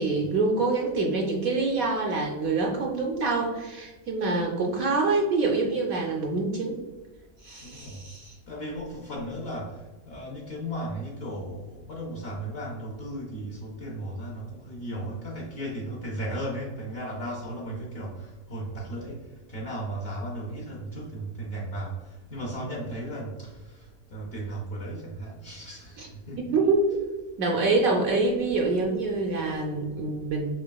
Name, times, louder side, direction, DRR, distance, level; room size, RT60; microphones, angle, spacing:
voice 1, 0.0-6.8 7.4-8.4 26.0-26.1 26.5-27.0 27.4-30.6, right 3 dB, 70° right, 0 dB, 0.8 m, -26 dB
voice 2, 7.6-8.0 8.5-9.7 10.1-19.2 19.5-21.9 22.3-23.8 24.1-26.6, right 1 dB, 70° left, -3 dB, 0.5 m, -35 dB
5.8 x 2.3 x 2.2 m, 1.2 s
omnidirectional pair, 1.9 m